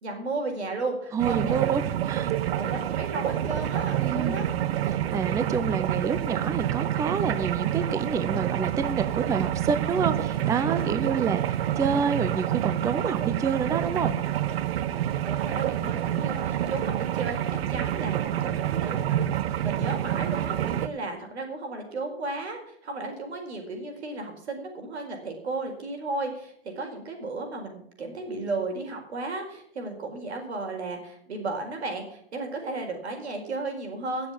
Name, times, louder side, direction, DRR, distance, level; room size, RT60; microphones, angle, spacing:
voice 1, 0.0-1.8 2.5-4.5 10.6-10.7 15.3-19.2 19.6-34.3, right 3 dB, 85° right, 3 dB, 4.5 m, -34 dB
voice 2, 1.1-2.3 4.0-4.4 4.9-14.2, right 5 dB, 10° right, 12 dB, 0.5 m, -28 dB
sound 1, 1.2-20.9, right 11 dB, 65° right, 0.9 m, -28 dB
17.0 x 7.2 x 7.3 m, 0.68 s
hypercardioid pair, 130°, 32 cm